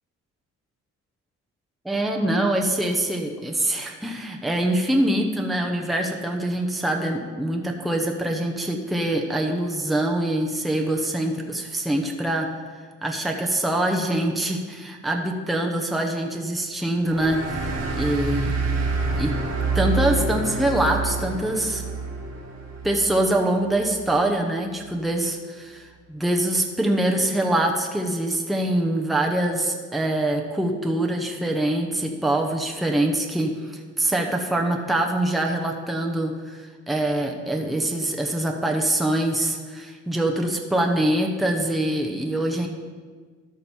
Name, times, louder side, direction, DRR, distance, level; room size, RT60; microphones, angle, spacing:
voice 1, 1.8-12.5 13.0-18.5 19.1-19.4 19.7-21.8 22.8-42.7, right 1 dB, ahead, 1 dB, 0.9 m, -24 dB
sound 1, 17.1-24.1, right 3 dB, 55° right, 1.9 m, -27 dB
13.0 x 5.2 x 4.4 m, 1.5 s
cardioid pair, 90°, 30 cm